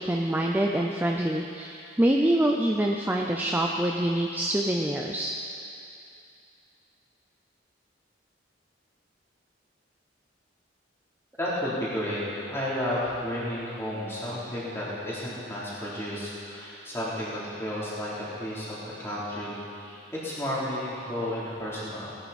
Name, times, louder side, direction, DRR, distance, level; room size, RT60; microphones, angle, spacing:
voice 1, 0.0-5.3, right 1 dB, 10° right, 0 dB, 0.5 m, -25 dB
voice 2, 11.4-22.1, left 1 dB, 15° left, -9 dB, 3.3 m, -32 dB
17.5 x 10.5 x 4.2 m, 2.6 s
head